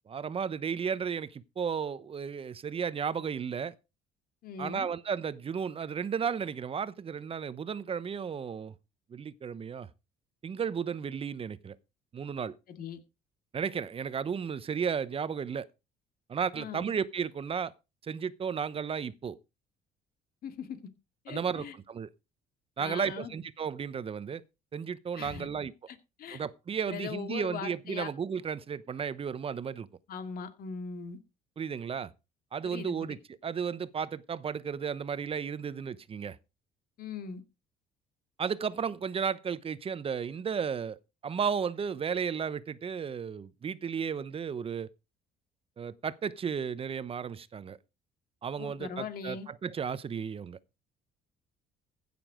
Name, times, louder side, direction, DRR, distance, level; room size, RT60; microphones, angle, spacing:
voice 1, 0.1-3.7 4.6-8.7 9.1-9.9 10.4-11.8 12.1-12.5 13.5-15.7 16.3-17.7 18.0-19.4 21.3-22.1 22.8-24.4 24.7-25.7 26.3-29.9 31.6-32.1 32.5-33.2 33.4-36.4 38.4-44.9 45.8-47.8 48.4-50.6, right 7 dB, 35° right, 0.8 m, -34 dB
voice 2, 4.4-4.9 12.7-13.0 16.5-16.9 20.4-20.8 21.2-21.7 22.8-23.3 25.2-25.5 25.9-26.4 26.8-28.1 30.1-31.2 32.6-33.1 37.0-37.4 48.6-49.5, left 6 dB, 60° left, 2.1 m, -40 dB
15.5 x 7.0 x 5.0 m
cardioid pair, 110°, 17 cm